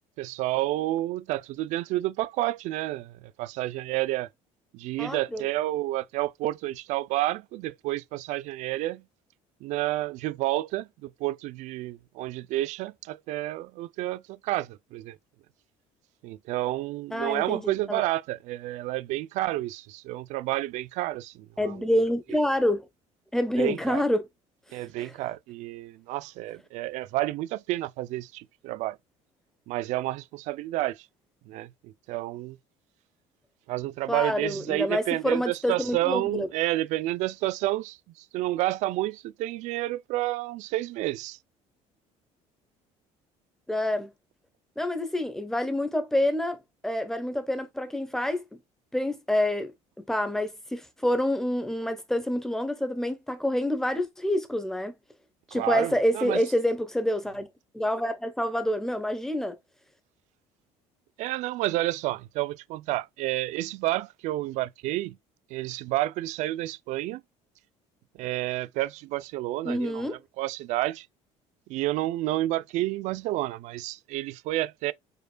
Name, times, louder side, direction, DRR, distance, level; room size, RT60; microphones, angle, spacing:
voice 1, 0.2-4.3 4.7-9.0 9.6-15.2 16.2-21.9 23.6-24.0 24.7-29.0 29.7-31.0 31.5-32.6 33.7-38.0 38.3-41.4 55.5-56.4 61.2-65.2 65.5-67.2 68.2-71.1 71.7-74.9, right 16 dB, 65° right, 0.4 m, -30 dB
voice 2, 5.0-5.4 17.1-18.0 21.6-22.9 23.3-24.2 25.0-25.1 34.1-36.5 43.7-44.1 44.8-46.6 46.8-48.4 48.9-49.7 50.0-54.9 55.5-57.5 57.7-59.6 69.6-70.2, left 1 dB, 5° left, 1.0 m, -27 dB
5.1 x 4.4 x 2.2 m
cardioid pair, 145°, 13 cm